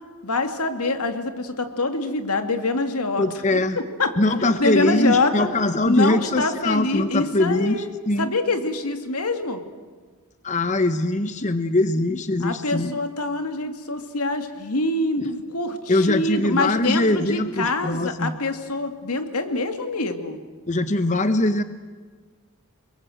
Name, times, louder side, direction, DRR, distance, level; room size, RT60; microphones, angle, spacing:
voice 1, 0.2-3.2 4.0-4.1 4.4-5.5 5.8-7.9 8.2-9.6 12.4-20.4, left 2 dB, 90° left, 7 dB, 2.4 m, -25 dB
voice 2, 3.2-3.8 4.2-8.3 10.4-13.0 15.2-15.3 15.9-18.3 20.7-21.6, left 2 dB, 35° left, 11 dB, 0.8 m, -22 dB
29.5 x 21.5 x 7.8 m, 1.5 s
head